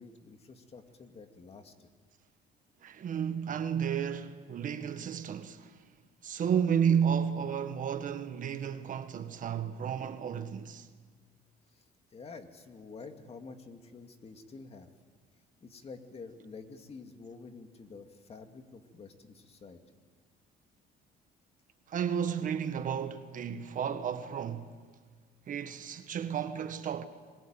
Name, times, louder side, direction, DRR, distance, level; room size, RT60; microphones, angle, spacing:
voice 1, 0.0-1.9 11.7-11.8 12.1-14.9 15.6-19.8, left 4 dB, 35° left, 2.4 m, -49 dB
voice 2, 2.8-5.7 6.2-10.9 21.9-24.7 25.5-27.0, right 8 dB, 50° right, 1.7 m, -32 dB
26.0 x 21.5 x 9.0 m
cardioid pair, 110°, 17 cm